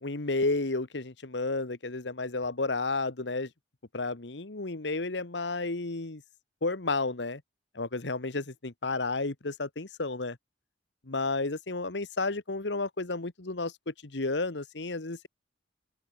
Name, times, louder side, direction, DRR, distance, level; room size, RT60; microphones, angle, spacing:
voice 1, 0.0-3.5 3.9-6.2 6.6-7.4 7.7-10.4 11.1-15.3, left 3 dB, 70° left, 1.4 m, -32 dB
open air
head